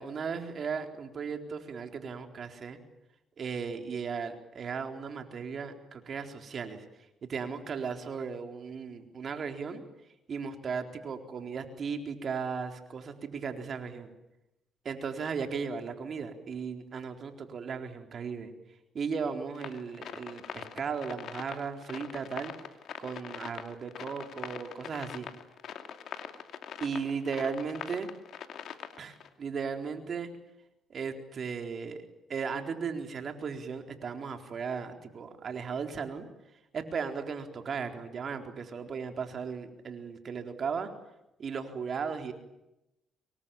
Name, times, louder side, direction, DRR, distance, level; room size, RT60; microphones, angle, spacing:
voice 1, 0.0-2.8 3.4-6.8 7.3-9.8 10.3-14.1 14.8-18.5 18.9-22.5 23.0-25.3 26.8-28.1 29.0-30.3 30.9-32.0 32.3-36.3 36.7-40.9 41.4-42.3, right 5 dB, 50° right, 5 dB, 4.1 m, -36 dB
sound 1, 19.5-29.3, left 9 dB, 70° left, 2.5 m, -42 dB
25.5 x 23.0 x 9.0 m, 0.90 s
cardioid pair, 90°, 0 cm